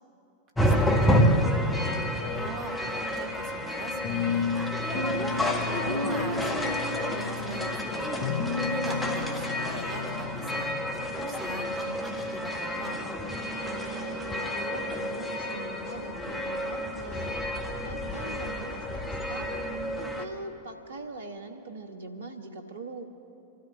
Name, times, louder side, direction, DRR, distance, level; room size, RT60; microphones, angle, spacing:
sound 1, 0.6-20.3, equal, 10° left, 1.4 m, -29 dB
voice 1, 0.6-1.6 2.3-8.1 8.4-13.1, right 1 dB, 40° right, 0 dB, 2.6 m, -40 dB
sound 2, 4.0-11.1, left 5 dB, 60° left, 1.1 m, -33 dB
voice 2, 13.6-17.4 17.8-19.5 20.0-23.0, right 3 dB, 70° right, 6 dB, 1.3 m, -42 dB
26.5 x 13.0 x 3.5 m, 2.8 s
figure-of-eight pair, 90°, 0 cm